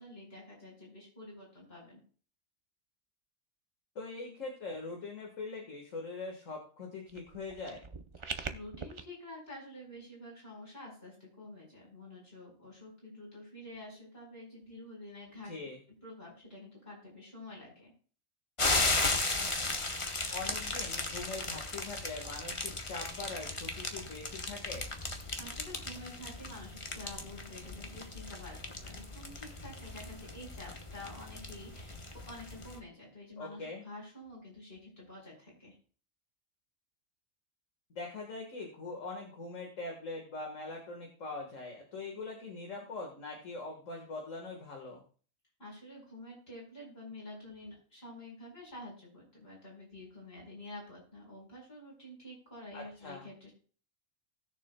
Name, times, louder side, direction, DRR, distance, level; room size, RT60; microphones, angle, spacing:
voice 1, 0.0-2.0 8.2-15.5 16.0-17.9 25.1-32.0 32.3-35.7 45.6-53.5, left 1 dB, 45° left, -2 dB, 5.0 m, -49 dB
voice 2, 4.0-7.8 15.4-15.8 20.3-24.9 33.4-33.8 38.0-45.0 52.7-53.3, left 3 dB, 65° left, 1 dB, 2.0 m, -42 dB
sound 1, 7.1-9.0, right 4 dB, 35° right, 0.5 m, -42 dB
sound 2, 18.6-32.8, left 2 dB, 25° left, 0.9 m, -36 dB
19.0 x 6.9 x 2.3 m, 0.41 s
omnidirectional pair, 1.4 m